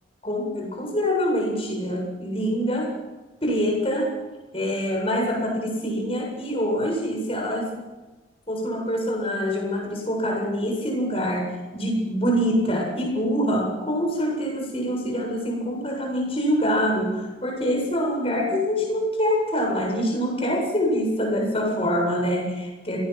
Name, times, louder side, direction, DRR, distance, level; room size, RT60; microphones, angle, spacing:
voice 1, 0.2-2.9 3.4-4.1 4.5-7.7 8.5-23.0, equal, 30° left, 1 dB, 7.6 m, -25 dB
26.5 x 19.0 x 6.1 m, 1.1 s
head